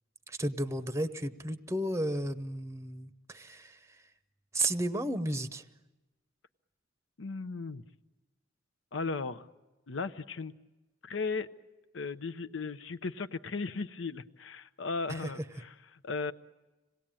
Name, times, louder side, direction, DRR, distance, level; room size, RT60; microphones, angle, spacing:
voice 1, 0.3-4.0 4.5-5.6 15.1-15.3, right 1 dB, 15° right, 11 dB, 0.8 m, -33 dB
voice 2, 7.2-7.8 8.9-9.5 9.9-10.5 11.0-11.5 11.9-16.3, left 4 dB, 75° left, 12 dB, 0.8 m, -36 dB
26.5 x 18.5 x 8.9 m, 1.1 s
head